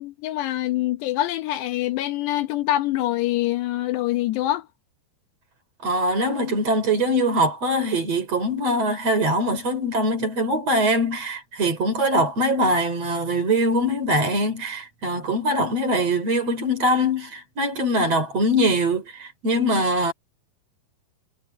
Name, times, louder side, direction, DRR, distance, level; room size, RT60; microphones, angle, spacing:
voice 1, 0.0-4.7, left 14 dB, 80° left, 3.2 m, -25 dB
voice 2, 5.8-20.1, equal, 40° right, 4.6 m, -22 dB
omnidirectional pair, 4.9 m